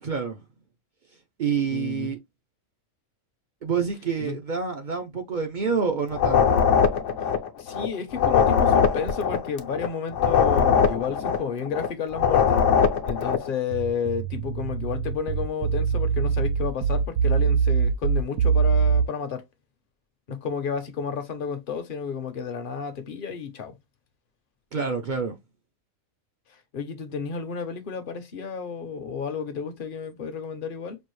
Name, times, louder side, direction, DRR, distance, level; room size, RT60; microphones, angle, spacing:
voice 1, 0.0-0.4 1.4-2.2 3.6-6.6 24.7-25.4, right 6 dB, 50° right, 0.6 m, -27 dB
voice 2, 1.7-2.1 4.2-4.4 7.6-12.6 13.1-19.4 20.3-23.8 26.7-31.0, left 6 dB, 50° left, 0.8 m, -31 dB
sound 1, 6.1-11.9 12.1-13.5, left 7 dB, 70° left, 1.0 m, -21 dB
sound 2, 13.7-19.1, right 6 dB, 85° right, 1.0 m, -23 dB
5.3 x 2.5 x 3.1 m
omnidirectional pair, 1.4 m